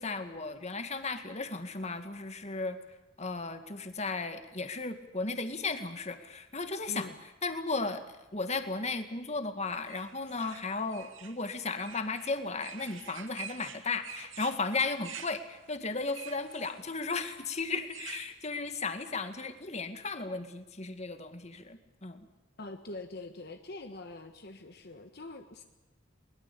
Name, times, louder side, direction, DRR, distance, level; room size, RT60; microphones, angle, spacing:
voice 1, 0.0-2.8 3.2-7.1 7.4-8.0 8.3-22.3, left 3 dB, 35° left, 8 dB, 2.1 m, -35 dB
voice 2, 6.9-7.2 22.6-25.6, left 2 dB, 55° left, 6 dB, 1.6 m, -44 dB
sound 1, 9.9-18.3, right 8 dB, 90° right, 2.4 m, -47 dB
23.0 x 21.5 x 8.6 m, 1.0 s
head